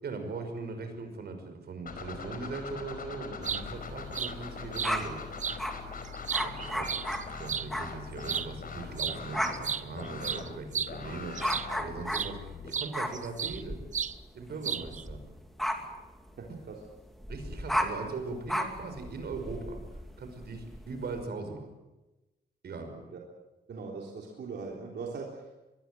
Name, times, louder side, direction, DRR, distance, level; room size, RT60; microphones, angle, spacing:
voice 1, 0.0-5.2 6.3-7.0 7.4-13.8 14.3-15.2 16.5-16.6 17.3-19.8 20.2-21.7 22.6-23.0, right 4 dB, 70° right, 7 dB, 5.7 m, -40 dB
sound 1, 1.9-12.7, left 5 dB, 55° left, 5.1 m, -42 dB
sound 2, 3.2-3.6 4.1-4.3 4.7-4.9 5.4-5.6 6.0-7.7 8.2-8.5 9.0-9.2 9.4-11.8 12.1-12.3 12.7-13.6 13.9-14.1 14.6-15.0, right 7 dB, 45° right, 0.8 m, -33 dB
sound 3, 3.4-5.8 6.3-8.0 8.3-8.6 8.8-21.2, equal, ahead, 2.6 m, -36 dB
voice 2, 16.4-16.8 23.1-23.2 23.7-25.6, right 4 dB, 85° right, -1 dB, 3.8 m, -40 dB
24.0 x 21.5 x 7.7 m, 1.0 s
wide cardioid pair, 160°, 17 cm